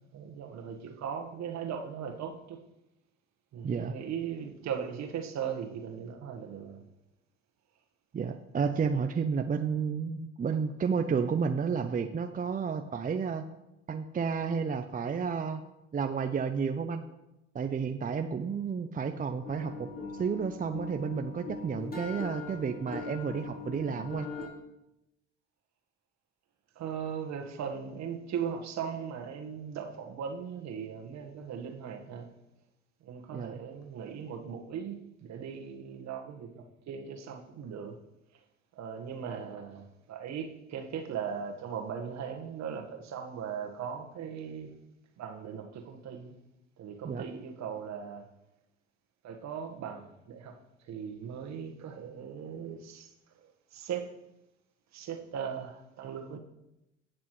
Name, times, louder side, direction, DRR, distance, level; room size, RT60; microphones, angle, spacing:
voice 1, 0.1-2.6 3.5-6.8 26.8-32.3 33.0-34.9 35.2-38.0 38.7-44.7 45.2-46.3 46.8-48.2 49.2-50.5 50.9-53.1 53.7-54.1 54.9-56.4, right 7 dB, 50° right, 1.5 m, -38 dB
voice 2, 3.6-4.0 8.1-13.4 13.9-15.6 15.9-17.0 17.5-19.9 20.1-24.3 33.3-33.6 47.0-47.2, right 6 dB, 25° right, 0.6 m, -31 dB
sound 1, 19.4-24.5, left 3 dB, 25° left, 3.5 m, -41 dB
17.5 x 6.1 x 3.2 m
hypercardioid pair, 60°, 34 cm